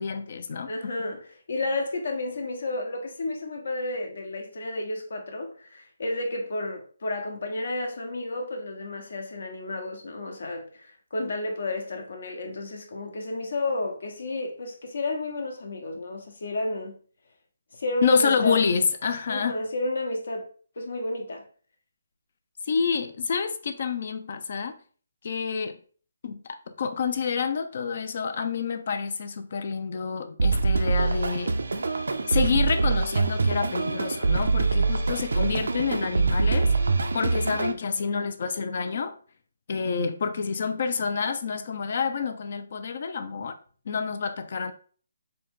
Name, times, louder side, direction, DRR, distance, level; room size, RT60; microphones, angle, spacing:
voice 1, 0.0-0.7 18.0-19.6 22.7-24.8 25.2-25.8 26.2-31.6 32.3-36.7 37.1-39.1 39.7-43.6 43.9-44.7, left 5 dB, 50° left, 0.5 m, -28 dB
voice 2, 0.7-17.0 17.7-18.7 19.3-20.5 20.8-21.4, left 2 dB, 65° left, 1.1 m, -31 dB
sound 1, 30.4-37.7, right 4 dB, 85° right, 0.5 m, -24 dB
4.0 x 2.8 x 3.5 m
hypercardioid pair, 160°, 0 cm